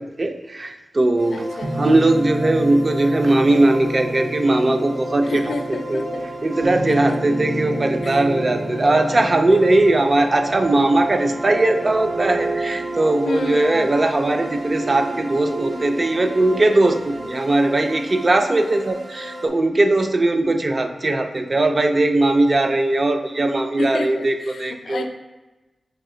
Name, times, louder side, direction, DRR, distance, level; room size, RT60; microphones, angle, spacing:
voice 1, 0.0-6.1 6.4-25.1, right 2 dB, 35° right, 6 dB, 0.3 m, -19 dB
sound 1, 1.2-19.5, right 1 dB, 55° right, 0.8 m, -34 dB
voice 2, 1.3-1.8 5.2-6.2 6.9-7.4 8.0-8.2 9.2-9.5 13.3-13.9 23.8-25.1, left 2 dB, 90° left, 5 dB, 0.4 m, -30 dB
sound 2, 1.6-17.3, right 1 dB, 90° right, 0.7 m, -30 dB
5.7 x 2.4 x 3.7 m, 1.1 s
wide cardioid pair, 130°, 0 cm